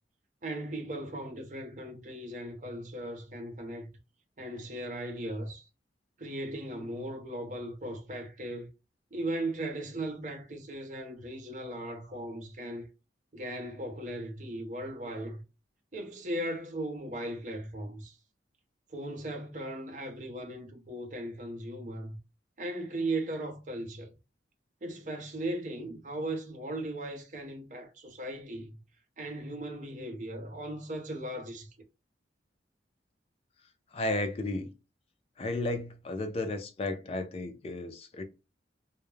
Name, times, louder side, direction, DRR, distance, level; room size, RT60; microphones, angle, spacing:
voice 1, 0.4-3.9 4.4-5.7 6.2-8.7 9.1-12.9 13.3-15.4 15.9-18.2 18.9-22.2 22.6-24.1 24.8-28.8 29.2-31.7, right 1 dB, 45° right, 0.6 m, -37 dB
voice 2, 33.9-34.7 35.4-38.2, left 2 dB, 30° left, 0.4 m, -33 dB
2.3 x 2.0 x 3.1 m
head